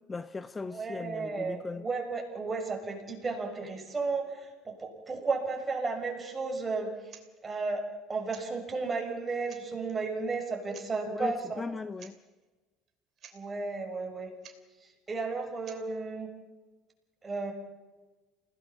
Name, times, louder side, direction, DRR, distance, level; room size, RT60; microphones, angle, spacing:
voice 1, 0.1-1.8 11.1-12.1, left 4 dB, 20° left, 13 dB, 0.7 m, -38 dB
voice 2, 0.6-6.9 7.4-7.8 8.1-11.6 13.3-14.3 15.1-16.3 17.2-17.5, right 4 dB, 25° right, 2 dB, 6.5 m, -33 dB
sound 1, 7.1-7.3 8.3-8.5 9.1-9.2 9.4-10.0 10.7-10.9 11.9-12.2 12.4-12.5 12.9-13.0 13.2-13.4 14.4-14.6 15.6-15.8, right 8 dB, 45° right, 3.0 m, -52 dB
28.5 x 17.5 x 5.9 m, 1.2 s
figure-of-eight pair, 60°, 0 cm